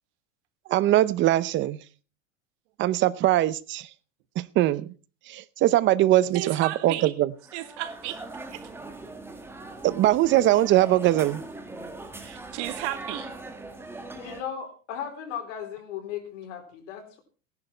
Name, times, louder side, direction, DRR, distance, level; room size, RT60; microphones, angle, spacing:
voice 1, 0.7-1.8 2.8-3.9 4.4-4.8 5.3-7.3 9.8-11.4, right 14 dB, 30° right, 18 dB, 0.7 m, -21 dB
voice 2, 6.3-7.1 7.5-8.2 8.5-8.6 12.2-13.3, right 15 dB, 65° right, 10 dB, 2.0 m, -34 dB
sound 1, 7.4-14.4, right 2 dB, 5° right, 1.7 m, -40 dB
voice 3, 14.2-17.2, left 8 dB, 80° left, 3 dB, 4.1 m, -36 dB
17.0 x 11.0 x 4.4 m, 0.36 s
supercardioid pair, 145°, 37 cm